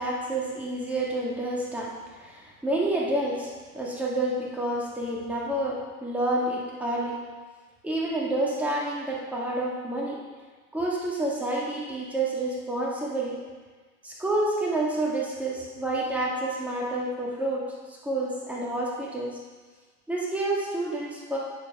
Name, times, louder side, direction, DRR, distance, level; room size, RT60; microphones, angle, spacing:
voice 1, 0.0-7.2 7.8-10.2 10.7-13.4 14.0-19.3 20.1-21.4, right 1 dB, 5° right, -4 dB, 1.8 m, -29 dB
9.5 x 4.7 x 5.4 m, 1.4 s
hypercardioid pair, 110°, 44 cm